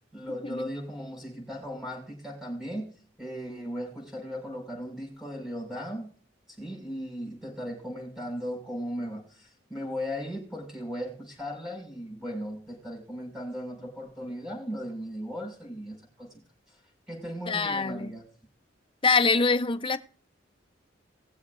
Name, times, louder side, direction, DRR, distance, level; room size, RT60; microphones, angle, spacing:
voice 1, 0.0-6.1 6.6-16.3 16.7-16.8 17.1-18.3, equal, 5° right, 5.6 m, -37 dB
voice 2, 17.5-18.1 19.0-20.0, left 4 dB, 30° left, 0.7 m, -24 dB
21.0 x 7.2 x 2.5 m
head